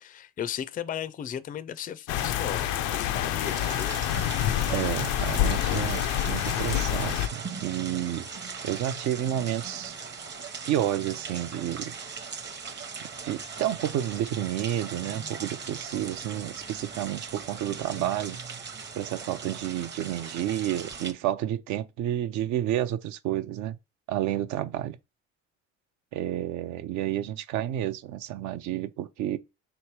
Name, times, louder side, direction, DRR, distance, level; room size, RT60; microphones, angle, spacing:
voice 1, 0.0-2.7 2.9-4.1, left 9 dB, 30° left, 0.3 m, -36 dB
sound 1, 2.1-7.3, left 12 dB, 85° left, 0.5 m, -27 dB
sound 2, 3.4-21.1, right 5 dB, 35° right, 0.8 m, -39 dB
voice 2, 4.7-6.0 6.3-8.3 8.6-10.0 10.6-11.9 13.2-18.4 19.0-23.8 24.1-25.0 26.1-29.4, right 12 dB, 75° right, 0.5 m, -30 dB
3.1 x 3.1 x 4.5 m
supercardioid pair, 75°, 30 cm